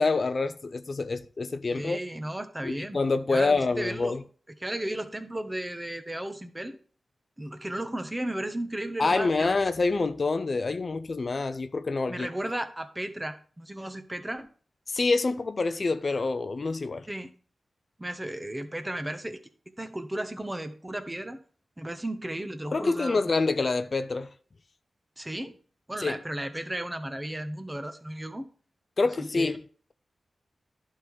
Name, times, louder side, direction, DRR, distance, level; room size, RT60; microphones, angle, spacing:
voice 1, 0.0-2.0 2.6-4.2 9.0-12.3 14.9-17.1 22.7-24.3 26.0-26.2 29.0-29.6, left 3 dB, 55° left, 0.5 m, -26 dB
voice 2, 1.7-3.0 3.3-4.2 4.6-6.8 7.4-9.6 12.1-14.5 17.1-17.3 18.0-19.4 19.8-21.4 21.8-23.3 25.2-25.6 25.9-28.5 29.2-29.6, right 1 dB, 20° right, 1.0 m, -34 dB
11.0 x 3.8 x 4.7 m
cardioid pair, 45°, 0 cm